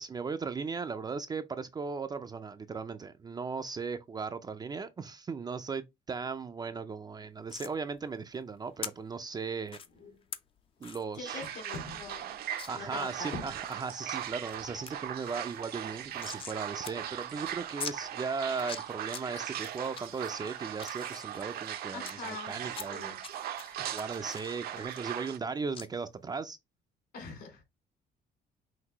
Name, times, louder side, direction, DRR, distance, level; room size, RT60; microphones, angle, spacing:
voice 1, 0.0-9.8 10.8-11.4 12.7-23.2 23.8-26.6, right 5 dB, 25° right, 0.4 m, -37 dB
sound 1, 7.0-24.9, left 3 dB, 85° left, 2.0 m, -53 dB
sound 2, 7.5-7.7 8.8-8.9 9.7-9.9 10.3-10.4 10.8-11.0 11.4-11.5 11.8-11.9 12.6-12.7 13.2-13.7 14.2-14.6 14.9-15.0 15.2-16.6 16.8-16.9 17.2-17.3 17.8-18.0 18.5-19.2 19.6-20.0 20.5-22.1 22.7-23.3 23.6-25.5 25.7-25.9, left 6 dB, 30° left, 0.5 m, -42 dB
voice 2, 11.1-12.4 12.7-13.4 21.9-23.2 27.1-27.6, left 4 dB, 65° left, 2.6 m, -44 dB
sound 3, 11.2-25.4, right 11 dB, 65° right, 0.6 m, -39 dB
5.9 x 2.6 x 2.9 m
cardioid pair, 110°, 17 cm